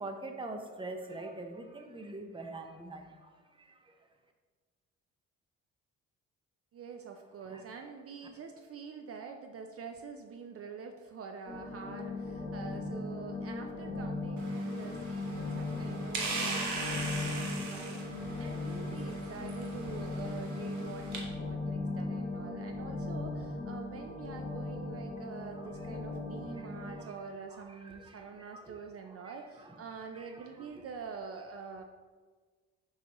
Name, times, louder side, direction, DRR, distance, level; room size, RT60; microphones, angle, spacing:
voice 1, 0.0-4.1 7.5-7.9 25.5-25.7 26.1-26.2 26.5-28.8 29.1-29.8 30.1-30.8 31.7-31.8, right 2 dB, 15° right, 5 dB, 0.8 m, -46 dB
voice 2, 6.7-31.8, right 5 dB, 50° right, 5 dB, 0.5 m, -46 dB
sound 1, 11.5-27.0, left 2 dB, 30° left, 1.0 m, -38 dB
sound 2, 14.4-21.2, right 3 dB, 70° right, 1.4 m, -40 dB
5.9 x 5.7 x 3.0 m, 1.4 s
cardioid pair, 90°, 30 cm